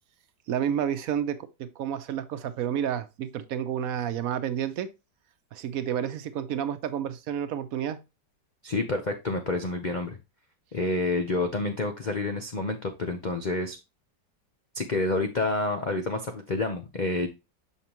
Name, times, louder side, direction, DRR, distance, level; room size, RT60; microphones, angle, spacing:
voice 1, 0.5-4.9 5.5-8.0, right 9 dB, 65° right, 0.9 m, -30 dB
voice 2, 8.6-10.2 10.7-13.8 14.7-17.3, left 2 dB, 80° left, 0.4 m, -28 dB
6.5 x 5.5 x 2.9 m
omnidirectional pair, 1.9 m